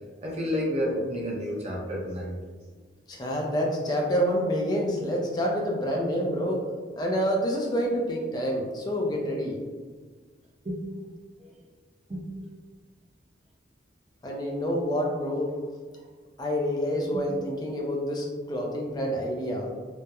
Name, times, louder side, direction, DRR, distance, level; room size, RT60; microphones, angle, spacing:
voice 1, 0.2-2.3 10.6-10.9 11.4-11.5 12.1-12.3 17.1-17.2, equal, 35° right, -3 dB, 0.5 m, -30 dB
voice 2, 3.1-6.6 7.0-9.6 14.2-15.5 16.4-19.7, equal, 20° left, -1 dB, 0.4 m, -27 dB
2.8 x 2.0 x 2.2 m, 1.5 s
head